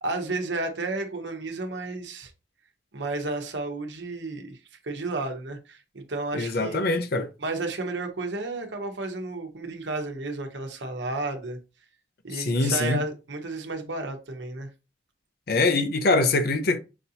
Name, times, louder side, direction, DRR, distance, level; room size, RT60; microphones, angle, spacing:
voice 1, 0.0-2.3 2.9-4.6 4.8-6.8 7.4-11.6 12.2-14.7, right 2 dB, 80° right, 1.0 m, -32 dB
voice 2, 6.3-7.3 12.3-13.0 15.5-16.8, left 3 dB, 60° left, 0.6 m, -23 dB
5.8 x 2.7 x 2.8 m
head